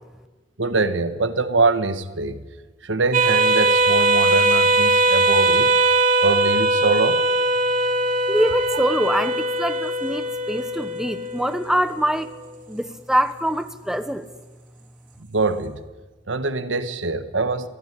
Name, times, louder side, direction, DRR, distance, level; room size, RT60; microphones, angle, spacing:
voice 1, 0.6-2.4 2.8-5.7 6.2-7.3 15.3-15.8 16.3-17.7, right 3 dB, 80° right, 12 dB, 1.5 m, -23 dB
sound 1, 3.1-12.1, right 2 dB, 45° right, 3.7 m, -20 dB
voice 2, 8.3-12.3 12.7-14.3, equal, 5° right, 10 dB, 1.0 m, -24 dB
24.0 x 15.5 x 10.0 m, 1.3 s
head